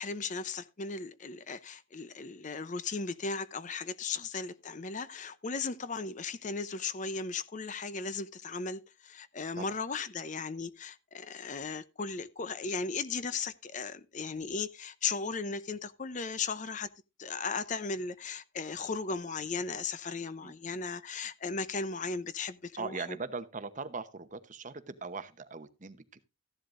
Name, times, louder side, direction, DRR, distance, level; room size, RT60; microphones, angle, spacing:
voice 1, 0.0-16.9 17.2-23.2, left 4 dB, 40° left, 0.7 m, -36 dB
voice 2, 22.8-26.2, right 4 dB, 40° right, 0.9 m, -40 dB
14.5 x 11.0 x 2.5 m
head